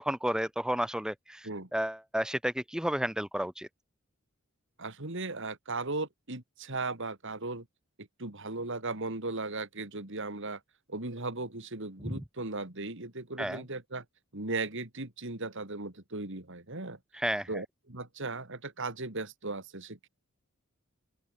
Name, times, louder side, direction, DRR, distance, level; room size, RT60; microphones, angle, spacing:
voice 1, 0.0-1.5 1.7-3.7 12.0-12.1 13.4-13.6 17.2-17.5, equal, 5° right, 1.1 m, -31 dB
voice 2, 4.8-7.7 8.0-10.6 10.9-14.1 14.3-17.0 17.5-20.1, right 3 dB, 60° right, 3.5 m, -37 dB
open air
head